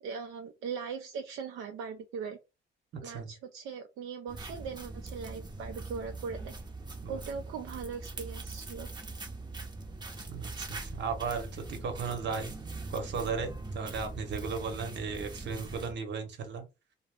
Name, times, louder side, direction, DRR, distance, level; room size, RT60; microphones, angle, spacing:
voice 1, 0.0-2.4 3.0-6.5 7.1-8.9, right 6 dB, 85° right, 4 dB, 0.4 m, -40 dB
sound 1, 4.3-15.9, right 3 dB, 20° right, 0.6 m, -42 dB
voice 2, 10.3-12.5 12.9-16.6, right 5 dB, 65° right, 6 dB, 0.9 m, -36 dB
2.3 x 2.0 x 3.4 m, 0.26 s
cardioid pair, 90°, 20 cm